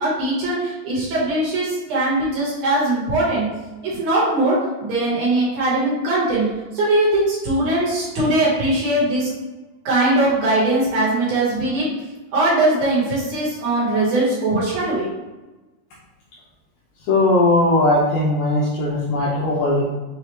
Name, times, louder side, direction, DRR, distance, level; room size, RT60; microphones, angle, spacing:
voice 1, 0.0-3.5 3.8-6.5 6.7-9.3 9.8-11.9 12.3-15.1, right 2 dB, 55° right, -7 dB, 2.1 m, -20 dB
voice 2, 17.1-19.8, left 2 dB, 80° left, -6 dB, 2.1 m, -18 dB
6.5 x 2.4 x 3.0 m, 1.1 s
omnidirectional pair, 4.5 m